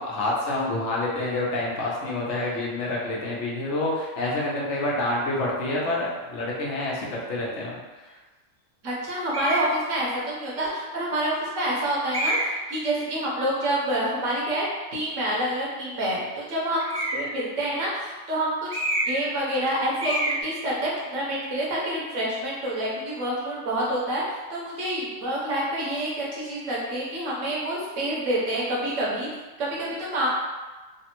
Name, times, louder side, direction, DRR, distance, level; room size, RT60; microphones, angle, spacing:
voice 1, 0.0-7.8, left 2 dB, 70° left, -4 dB, 1.0 m, -27 dB
voice 2, 8.8-14.6 14.9-18.7 19.1-29.3 29.6-30.3, right 1 dB, 80° right, -5 dB, 1.2 m, -27 dB
sound 1, 9.3-9.7 10.5-10.6 12.1-12.7 16.8-17.4 18.7-19.3 19.5-19.7 20.0-20.4, right 1 dB, 20° right, 0.4 m, -27 dB
3.3 x 2.1 x 2.9 m, 1.2 s
omnidirectional pair, 1.3 m